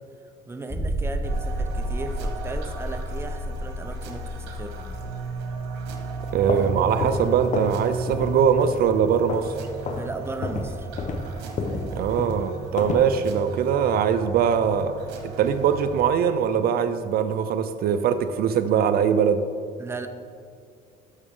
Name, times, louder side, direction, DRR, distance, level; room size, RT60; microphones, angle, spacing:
voice 1, 0.5-5.1 9.9-10.9 19.8-20.1, right 3 dB, 15° right, 7 dB, 0.7 m, -36 dB
sound 1, 0.7-6.1 6.4-6.5 7.0-7.1, right 1 dB, ahead, 1.3 m, -31 dB
sound 2, 1.2-16.0, right 3 dB, 90° right, 1.3 m, -35 dB
sound 3, 6.3-7.8 8.1-8.4 8.7-9.6 9.8-10.1 10.4-13.1, left 3 dB, 45° left, 1.1 m, -30 dB
voice 2, 6.3-9.5 11.9-14.9 15.2-19.4, right 7 dB, 65° right, 10 dB, 0.5 m, -22 dB
12.5 x 6.2 x 3.7 m, 2.2 s
cardioid pair, 110°, 17 cm